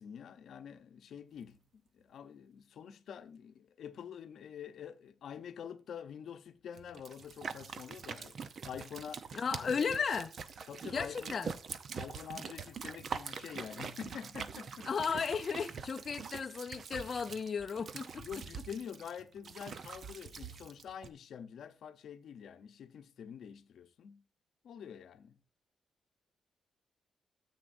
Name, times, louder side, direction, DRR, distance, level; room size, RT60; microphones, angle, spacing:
voice 1, 0.0-1.6 1.9-9.3 9.6-9.9 10.7-11.5 11.9-14.9 18.1-24.2 24.6-25.4, left 8 dB, 75° left, 0.7 m, -47 dB
sound 1, 6.8-21.1, right 6 dB, 50° right, 0.7 m, -44 dB
voice 2, 9.3-10.3 10.8-11.5 14.9-18.3, left 6 dB, 45° left, 0.5 m, -35 dB
13.5 x 7.9 x 2.6 m
wide cardioid pair, 145°, 0 cm